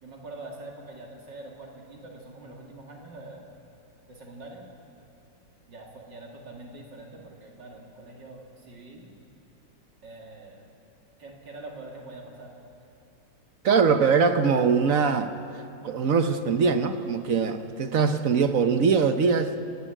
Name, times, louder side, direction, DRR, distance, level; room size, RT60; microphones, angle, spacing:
voice 1, 0.0-3.5 4.1-4.7 5.7-9.1 10.0-10.6 11.2-12.5, right 2 dB, 70° right, -1 dB, 3.0 m, -44 dB
voice 2, 13.6-15.3 15.8-19.5, right 5 dB, 55° right, 8 dB, 1.1 m, -22 dB
29.5 x 11.0 x 8.9 m, 2.8 s
omnidirectional pair, 2.0 m